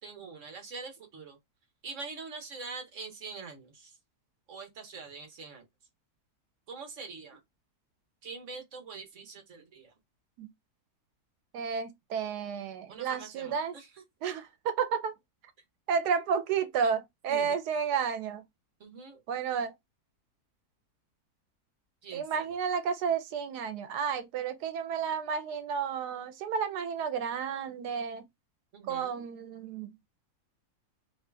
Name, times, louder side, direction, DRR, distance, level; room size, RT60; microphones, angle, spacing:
voice 1, 0.0-1.4 1.8-4.0 4.5-5.6 6.7-7.4 8.2-9.9 12.9-13.9 17.3-17.6 18.8-19.2 22.0-22.5 28.7-29.2, right 4 dB, 55° right, 1.3 m, -44 dB
voice 2, 11.5-13.8 14.2-15.1 15.9-18.4 19.3-19.7 22.1-28.3 28.9-29.9, right 6 dB, 85° right, 1.3 m, -31 dB
3.1 x 2.7 x 3.3 m
omnidirectional pair, 1.7 m